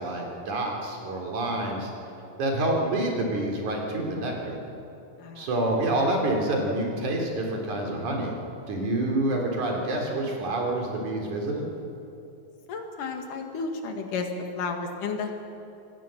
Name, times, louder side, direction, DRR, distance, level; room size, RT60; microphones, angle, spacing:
voice 1, 0.0-1.9 2.4-4.6 5.4-8.3 8.7-11.7, right 1 dB, 65° right, 0 dB, 4.8 m, -27 dB
voice 2, 12.7-14.3 14.6-15.3, left 4 dB, 80° left, 4 dB, 3.5 m, -32 dB
26.0 x 19.0 x 7.7 m, 2.8 s
omnidirectional pair, 3.7 m